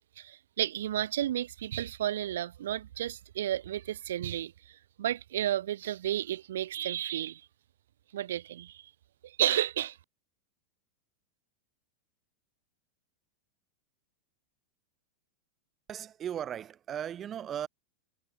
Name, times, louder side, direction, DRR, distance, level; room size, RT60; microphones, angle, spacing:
voice 1, 0.2-4.5 5.0-7.4 8.1-8.8 9.2-10.0, right 12 dB, 60° right, 0.4 m, -32 dB
voice 2, 15.9-17.7, right 9 dB, 25° right, 1.6 m, -37 dB
figure-of-eight pair, 90°, 0 cm